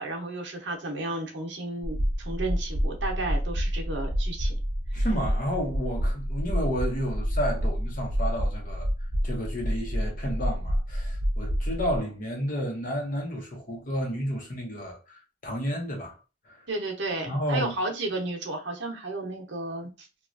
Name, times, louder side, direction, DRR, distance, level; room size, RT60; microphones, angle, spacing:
voice 1, 0.0-4.5 5.0-5.1 16.7-20.1, right 2 dB, 70° right, 0.8 m, -33 dB
sound 1, 1.8-12.0, equal, 25° right, 0.6 m, -28 dB
voice 2, 4.9-8.9 9.2-16.2 16.5-16.6 17.3-17.7, equal, 45° left, 0.8 m, -31 dB
3.0 x 2.3 x 2.5 m
head